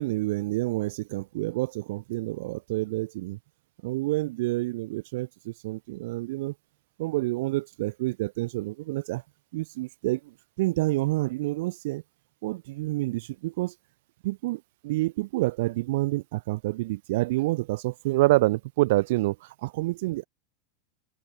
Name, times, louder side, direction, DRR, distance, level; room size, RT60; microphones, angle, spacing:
voice 1, 0.0-3.4 3.8-6.5 7.0-9.2 9.5-10.3 10.6-12.0 12.4-13.7 14.2-20.3, right 19 dB, 55° right, 0.6 m, -28 dB
supercardioid pair, 170°, 0 cm